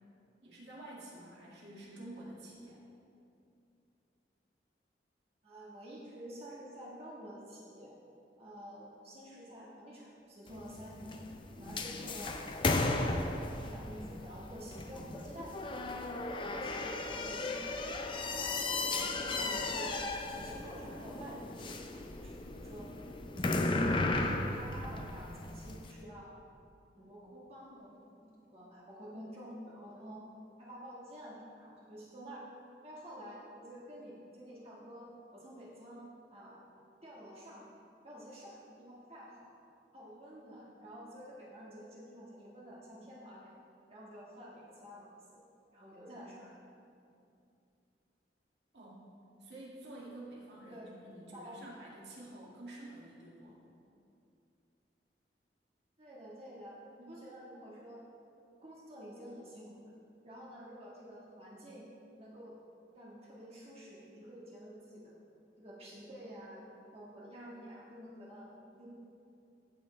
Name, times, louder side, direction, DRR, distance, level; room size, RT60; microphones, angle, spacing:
voice 1, 0.4-2.8 11.6-11.8 48.7-49.1 49.4-53.6, right 1 dB, 80° right, -5 dB, 2.2 m, -49 dB
voice 2, 5.4-7.9 8.4-11.2 11.6-13.1 13.5-15.6 15.9-16.0 16.5-17.7 18.1-20.0 20.3-21.8 22.2-22.9 23.4-26.3 27.0-27.9 28.2-30.2 30.6-32.4 32.8-36.6 37.0-37.6 38.0-39.5 39.9-43.5 43.9-45.4 45.7-46.6 50.7-50.9 51.3-51.6 56.0-58.0 58.6-59.7 60.2-61.8 62.2-62.6 62.9-65.2 65.6-66.6 66.9-68.5 68.7-68.9, equal, 35° right, -6 dB, 1.5 m, -49 dB
sound 1, 10.5-25.9, left 2 dB, 30° left, 0.5 m, -35 dB
15.0 x 5.6 x 3.3 m, 2.6 s
head